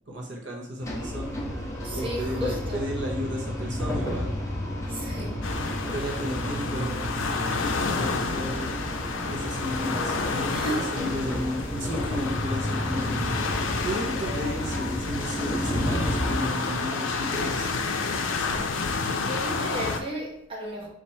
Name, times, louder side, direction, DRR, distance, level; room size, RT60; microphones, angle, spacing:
voice 1, 0.1-1.4 1.9-4.3 5.9-7.1 7.7-8.8 9.3-17.7, equal, 60° right, 0.8 m, -33 dB
sound 1, 0.8-16.4, equal, 15° left, 0.6 m, -32 dB
voice 2, 1.8-2.8 4.9-5.5 10.5-10.9 12.0-12.1 13.9-14.6 19.2-20.9, right 1 dB, 25° right, 0.9 m, -34 dB
sound 2, 5.4-20.0, left 4 dB, 80° left, 0.5 m, -30 dB
4.1 x 2.5 x 4.3 m
head